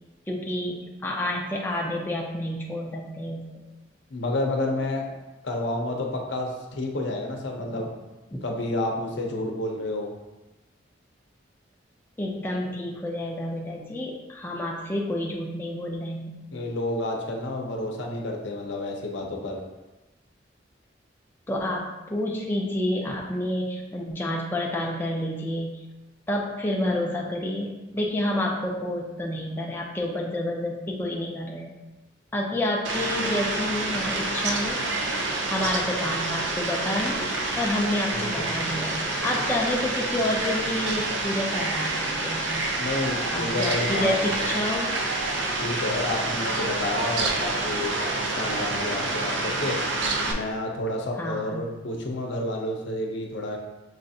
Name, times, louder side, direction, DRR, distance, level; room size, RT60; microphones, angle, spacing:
voice 1, 0.3-3.7 7.7-7.8 8.3-8.4 12.2-16.3 21.5-25.8 26.3-31.7 32.3-34.8 35.5-37.2 37.6-42.6 43.3-44.9 51.2-51.6, left 1 dB, 10° left, -2 dB, 0.4 m, -29 dB
voice 2, 4.1-5.1 5.4-7.9 8.4-10.1 16.5-19.6 38.1-38.5 42.8-44.5 45.6-49.8 50.3-53.6, left 2 dB, 80° left, 1 dB, 0.7 m, -30 dB
Fowl, 32.8-50.3, right 2 dB, 75° right, 0.5 m, -28 dB
6.3 x 2.5 x 2.7 m, 1.1 s
head